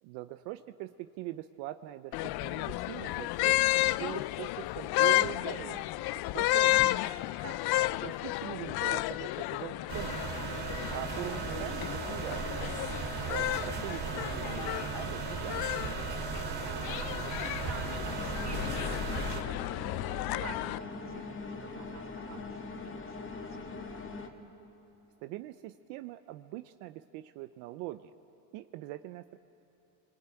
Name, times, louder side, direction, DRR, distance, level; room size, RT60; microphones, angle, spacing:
voice 1, 0.0-3.6 3.9-5.8 6.1-6.9 8.0-10.3 10.9-12.5 13.3-15.7 25.2-28.1 28.5-29.4, right 15 dB, 80° right, 10 dB, 0.8 m, -42 dB
sound 1, 2.1-20.8, left 18 dB, 55° left, 0.5 m, -32 dB
sound 2, 9.9-19.4, right 6 dB, 55° right, 2.6 m, -37 dB
voice 2, 10.8-11.1 16.4-23.7, right 5 dB, 35° right, 5 dB, 3.2 m, -49 dB
sound 3, 18.0-24.3, left 4 dB, 25° left, 2.4 m, -42 dB
29.0 x 22.0 x 9.0 m, 2.9 s
supercardioid pair, 110°, 45 cm